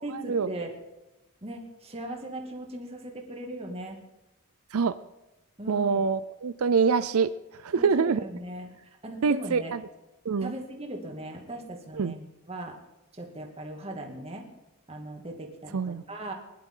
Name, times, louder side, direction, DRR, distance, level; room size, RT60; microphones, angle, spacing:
voice 1, 0.0-0.7 1.4-4.0 5.6-6.1 7.8-8.7 9.0-9.8 10.4-12.8 13.1-14.4 14.9-16.3, right 1 dB, 25° right, 1 dB, 2.3 m, -38 dB
voice 2, 5.7-7.3 7.6-8.2 9.2-9.8 10.3-10.5 12.0-12.1 15.7-16.0, right 5 dB, 80° right, 13 dB, 0.5 m, -25 dB
21.0 x 11.5 x 3.9 m, 0.98 s
head